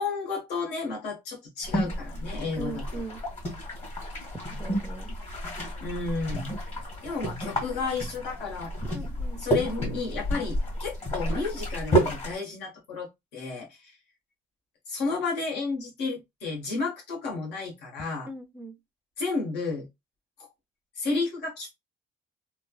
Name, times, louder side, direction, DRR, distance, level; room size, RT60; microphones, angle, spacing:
voice 1, 0.0-2.8 5.8-6.6 7.0-8.7 9.4-14.0 14.9-18.3 19.2-19.9 20.4-20.5 21.0-21.7, left 4 dB, 80° left, 1.3 m, -32 dB
sound 1, 1.6-12.4, right 1 dB, 40° left, 1.6 m, -31 dB
voice 2, 2.6-3.2 4.5-5.1 8.8-9.5 18.3-18.7, right 2 dB, 10° right, 0.5 m, -39 dB
3.2 x 2.2 x 2.4 m
cardioid pair, 110°, 17 cm